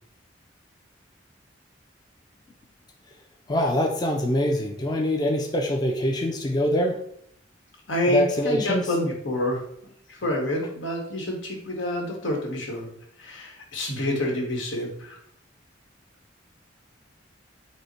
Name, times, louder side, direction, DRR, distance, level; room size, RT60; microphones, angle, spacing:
voice 1, 3.5-7.0 8.1-8.8, left 1 dB, 20° left, 1 dB, 0.4 m, -24 dB
voice 2, 7.9-9.6 10.1-12.9 13.2-15.2, left 1 dB, 85° left, 0 dB, 1.3 m, -28 dB
5.4 x 2.1 x 4.4 m, 0.67 s
head